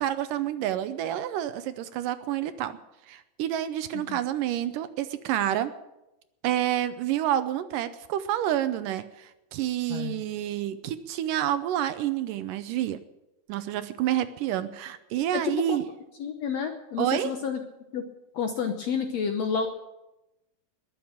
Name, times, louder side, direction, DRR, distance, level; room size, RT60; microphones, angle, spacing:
voice 1, 0.0-2.8 3.1-5.7 6.4-13.0 13.5-15.8 17.0-17.3, right 12 dB, 75° right, 12 dB, 2.2 m, -28 dB
voice 2, 9.9-10.2 15.3-15.8 16.2-17.6 17.9-18.0 18.3-19.7, left 6 dB, 65° left, 6 dB, 1.7 m, -30 dB
21.0 x 7.2 x 8.6 m, 0.94 s
omnidirectional pair, 4.1 m